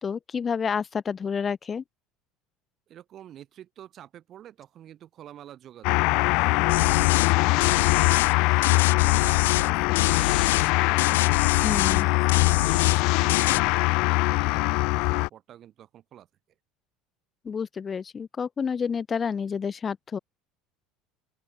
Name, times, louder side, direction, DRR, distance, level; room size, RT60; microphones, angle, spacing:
voice 1, 0.0-1.8 11.6-12.1 17.4-20.2, left 6 dB, 30° left, 0.9 m, -29 dB
voice 2, 2.9-11.1 11.7-16.3, right 11 dB, 50° right, 3.9 m, -49 dB
sound 1, 5.8-15.3, left 26 dB, 70° left, 0.4 m, -22 dB
sound 2, 6.7-7.3 7.6-8.3 8.6-9.7 9.9-10.7 11.0-12.0 12.3-13.0 13.3-13.6, left 15 dB, 90° left, 0.8 m, -26 dB
open air
supercardioid pair, 95°, 0 cm